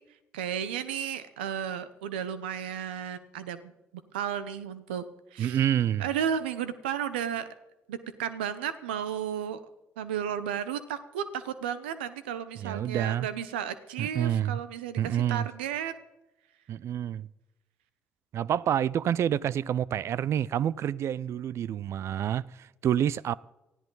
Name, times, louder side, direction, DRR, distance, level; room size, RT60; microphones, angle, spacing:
voice 1, 0.3-3.7 4.1-5.0 5.3-5.6 6.0-7.5 7.9-9.6 10.0-15.9, right 9 dB, 90° right, 0.9 m, -33 dB
voice 2, 5.4-6.1 12.6-13.3 14.0-14.6 15.0-15.5 16.7-17.3 18.3-23.3, right 10 dB, 60° right, 0.5 m, -28 dB
19.5 x 14.0 x 4.0 m
hypercardioid pair, 50°, 5 cm